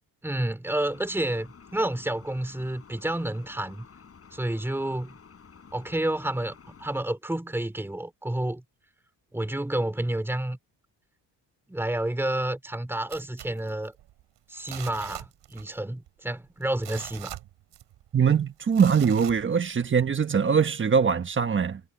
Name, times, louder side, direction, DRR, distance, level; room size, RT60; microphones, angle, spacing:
voice 1, 0.2-3.8 4.3-5.1 5.7-8.6 9.3-10.6 11.7-13.9 14.5-17.4, right 1 dB, 5° right, 3.0 m, -30 dB
sound 1, 0.8-7.0, left 6 dB, 35° left, 7.3 m, -52 dB
sound 2, 13.1-14.2 14.6-15.8 16.1-16.2 16.6-18.1 18.7-19.9 20.4-20.5, right 14 dB, 90° right, 5.4 m, -42 dB
voice 2, 18.1-21.8, right 6 dB, 30° right, 1.3 m, -22 dB
cardioid pair, 130°, 41 cm